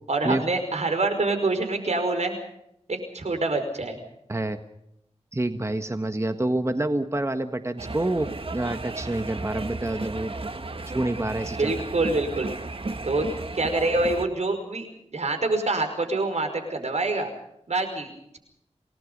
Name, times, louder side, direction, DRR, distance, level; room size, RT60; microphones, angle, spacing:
voice 1, 0.1-2.4 2.9-4.0 11.5-12.5 13.0-13.3 13.5-14.9 15.1-17.3 17.7-18.1, right 2 dB, 75° right, 7 dB, 5.3 m, -26 dB
voice 2, 5.3-10.3 10.9-11.7, right 1 dB, 25° right, 8 dB, 1.5 m, -27 dB
sound 1, 7.8-14.3, right 3 dB, 50° right, 1.7 m, -34 dB
28.5 x 19.5 x 5.4 m, 0.77 s
wide cardioid pair, 65°, 12 cm